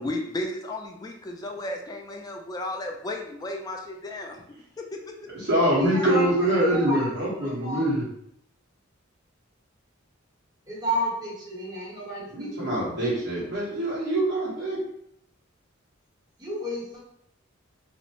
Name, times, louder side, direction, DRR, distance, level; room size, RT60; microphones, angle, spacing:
voice 1, 0.0-4.4 4.8-5.0, left 1 dB, 20° left, 2 dB, 0.3 m, -34 dB
voice 2, 5.3-8.1 12.3-14.8, right 1 dB, 55° right, -7 dB, 1.2 m, -24 dB
voice 3, 5.8-6.3 6.7-7.0 7.4-7.8 10.7-13.0 16.4-16.8, equal, 20° right, -8 dB, 1.0 m, -31 dB
2.6 x 2.1 x 2.9 m, 0.73 s
head